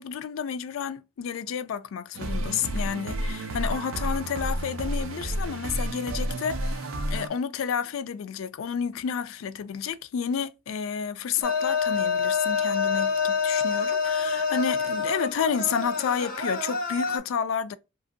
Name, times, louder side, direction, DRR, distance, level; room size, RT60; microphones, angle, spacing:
voice 1, 0.0-17.8, left 7 dB, 80° left, 0.3 m, -30 dB
sound 1, 2.1-7.3, right 1 dB, 75° right, 0.5 m, -30 dB
sound 2, 11.4-17.2, left 5 dB, 45° left, 0.7 m, -27 dB
2.9 x 2.5 x 2.5 m
head